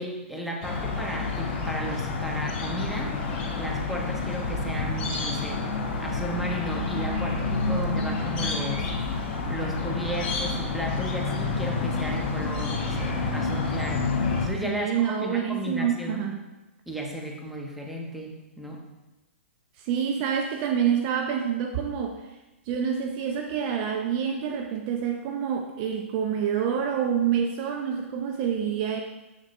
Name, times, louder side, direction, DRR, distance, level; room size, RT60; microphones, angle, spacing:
voice 1, 0.0-3.2 3.6-5.7 6.0-8.9 9.5-14.1 14.4-16.3 16.9-18.8, equal, ahead, -1 dB, 1.2 m, -34 dB
sound 1, 0.6-14.5, left 3 dB, 55° left, 1.9 m, -29 dB
voice 2, 14.6-16.4 19.8-22.2 22.7-29.0, right 8 dB, 40° right, 4 dB, 0.6 m, -27 dB
7.6 x 6.2 x 3.2 m, 1.0 s
hypercardioid pair, 120°, 7 cm